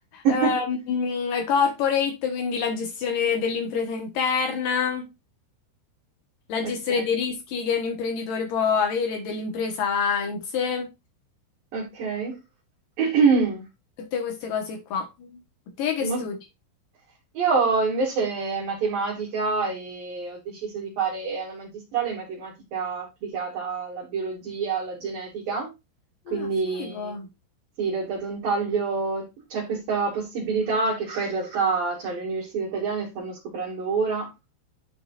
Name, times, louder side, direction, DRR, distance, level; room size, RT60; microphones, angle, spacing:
voice 1, 0.1-5.1 6.5-10.9 14.0-15.1 15.8-16.4 26.3-26.5 26.7-27.3, left 6 dB, 90° left, 1.9 m, -26 dB
voice 2, 6.6-7.0 11.7-12.4 13.0-13.7 16.0-16.2 17.3-25.7 26.3-27.1 27.8-34.3, right 4 dB, 55° right, 3.4 m, -26 dB
11.5 x 5.2 x 2.5 m
omnidirectional pair, 6.0 m